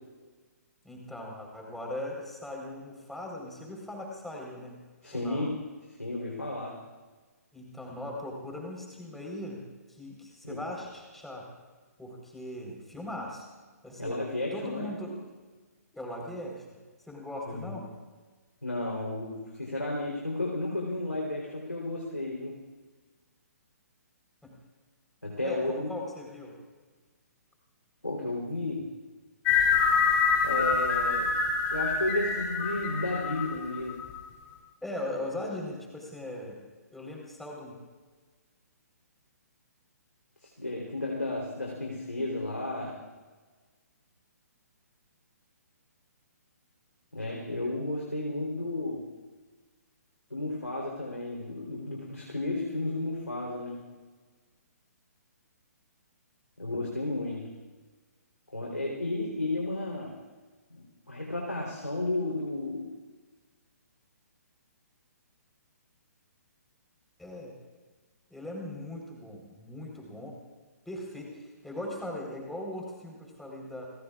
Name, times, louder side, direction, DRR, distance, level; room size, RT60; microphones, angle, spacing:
voice 1, 0.8-4.8 5.1-5.5 7.5-9.6 10.0-11.5 12.0-13.4 13.8-14.1 14.5-15.2 15.9-16.7 17.1-17.8 24.4-24.6 25.4-26.6 34.8-36.6 36.9-37.8 67.2-67.5 68.3-70.4 70.9-73.9, left 1 dB, ahead, -1 dB, 4.1 m, -39 dB
voice 2, 5.0-5.6 6.0-6.8 10.4-10.6 14.0-14.9 17.5-17.8 18.6-22.6 25.2-25.9 28.0-28.9 30.4-31.4 31.7-34.0 40.6-43.0 47.1-49.1 50.3-53.9 56.6-57.5 58.5-60.2 60.7-62.9, left 2 dB, 85° left, -2 dB, 3.6 m, -33 dB
sound 1, 29.5-34.2, left 5 dB, 20° left, 3.0 m, -26 dB
28.5 x 20.0 x 2.5 m, 1.3 s
figure-of-eight pair, 130°, 9 cm